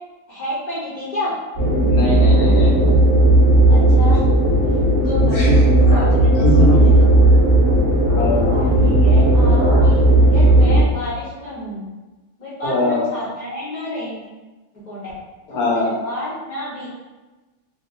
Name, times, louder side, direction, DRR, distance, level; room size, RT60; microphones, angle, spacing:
voice 1, 0.3-1.3 3.7-4.5 5.0-5.6 5.9-7.1 8.3-11.8 12.4-14.2 14.7-15.1 15.5-16.9, left 1 dB, 40° left, -8 dB, 0.8 m, -30 dB
sound 1, 1.6-10.8, right 1 dB, 35° right, 0.8 m, -14 dB
voice 2, 1.8-3.0 5.2-5.7 6.4-6.9 8.1-8.3 12.6-13.1 15.5-15.9, left 1 dB, 75° left, -4 dB, 1.3 m, -21 dB
2.9 x 2.7 x 2.5 m, 1.2 s
omnidirectional pair, 1.6 m